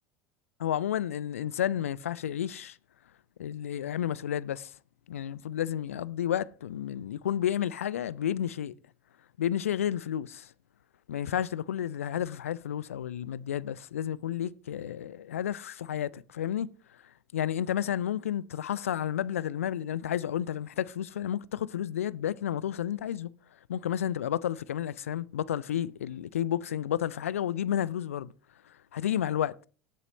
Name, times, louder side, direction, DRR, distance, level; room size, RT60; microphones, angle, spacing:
voice 1, 0.6-2.8 3.4-4.7 5.1-8.8 9.4-10.5 11.1-16.7 17.3-23.3 23.7-28.3 28.9-29.5, left 10 dB, 70° left, 0.4 m, -31 dB
18.0 x 8.0 x 3.1 m
figure-of-eight pair, 70°, 8 cm